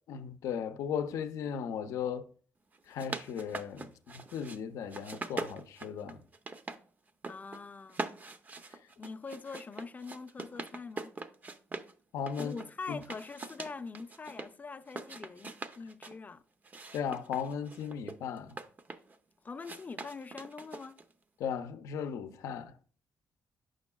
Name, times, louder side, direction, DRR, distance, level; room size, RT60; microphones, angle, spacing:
voice 1, 0.1-2.3 2.9-6.2 12.1-12.5 12.9-13.0 16.9-18.6 21.4-22.7, left 7 dB, 85° left, 0.5 m, -36 dB
sound 1, 2.7-4.6 4.9-6.8 7.1-7.6 7.9-11.9 12.3-14.5 14.9-16.2 16.6-19.2 19.6-21.1, right 3 dB, 35° right, 0.6 m, -42 dB
voice 2, 7.3-8.2 9.0-11.1 12.4-16.4 19.4-21.0, left 4 dB, 30° left, 0.5 m, -44 dB
8.6 x 6.3 x 2.3 m
cardioid pair, 80°, 5 cm